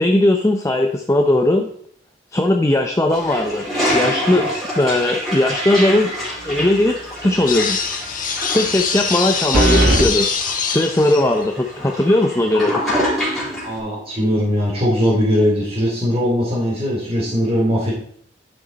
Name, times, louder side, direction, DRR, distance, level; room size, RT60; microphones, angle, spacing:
voice 1, 0.0-1.7 2.3-3.6 3.9-6.1 6.4-7.8 8.5-10.3 10.7-12.8, left 1 dB, 15° left, 4 dB, 0.7 m, -18 dB
Toilet flush, 3.1-13.8, equal, ahead, 3.9 m, -26 dB
sound 1, 6.4-6.9 7.2-7.3 9.5-10.1, right 2 dB, 55° right, 1.3 m, -17 dB
sound 2, 7.5-11.5, left 6 dB, 50° left, 1.4 m, -23 dB
voice 2, 13.6-17.9, equal, 35° right, -7 dB, 2.8 m, -19 dB
10.5 x 6.5 x 4.1 m, 0.62 s
head